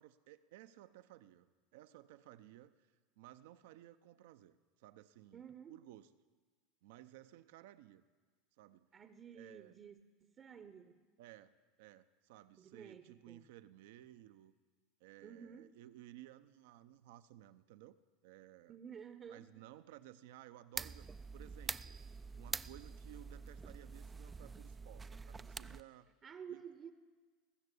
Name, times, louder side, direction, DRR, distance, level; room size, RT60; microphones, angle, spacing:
voice 1, 0.0-6.1 6.8-8.0 8.6-8.9 9.3-9.8 11.2-11.5 11.8-14.5 15.0-18.0 18.2-18.8 19.3-21.1 21.3-22.0 22.3-26.1 26.5-26.6, right 14 dB, 70° right, 0.6 m, -57 dB
voice 2, 5.3-5.8 8.9-11.0 12.6-13.5 15.2-15.7 18.7-19.7 26.2-26.9, right 7 dB, 35° right, 0.8 m, -52 dB
sound 1, 20.8-25.8, right 4 dB, 20° right, 0.4 m, -46 dB
20.0 x 6.7 x 8.3 m
hypercardioid pair, 85°, 0 cm